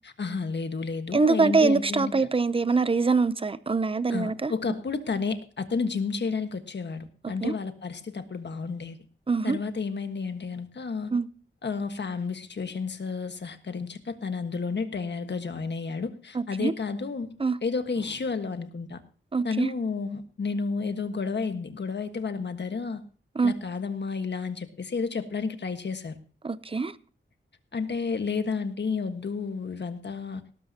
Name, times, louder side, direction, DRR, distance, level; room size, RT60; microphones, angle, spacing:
voice 1, 0.0-2.3 4.1-9.0 9.4-11.1 11.6-17.3 17.6-19.0 19.4-23.0 23.4-26.1 27.7-30.4, left 4 dB, 60° left, 1.5 m, -31 dB
voice 2, 1.1-4.5 7.4-7.5 9.3-9.6 11.1-11.3 16.3-16.7 17.4-17.6 19.3-19.7 23.4-23.5 26.4-26.9, right 4 dB, 25° right, 0.6 m, -24 dB
18.5 x 12.5 x 2.9 m
wide cardioid pair, 135°, 21 cm